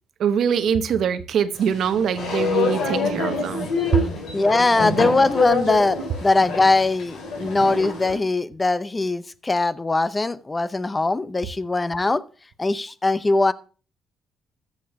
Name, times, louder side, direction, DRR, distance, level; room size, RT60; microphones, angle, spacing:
voice 1, 0.2-3.7 3.9-4.0, right 8 dB, 70° right, 11 dB, 1.0 m, -23 dB
sound 1, 1.6-8.2, left 3 dB, 85° left, 4.1 m, -26 dB
voice 2, 4.3-12.2 12.6-13.5, left 2 dB, 20° left, 15 dB, 0.7 m, -21 dB
14.0 x 6.7 x 4.7 m, 0.37 s
cardioid pair, 90°, 0 cm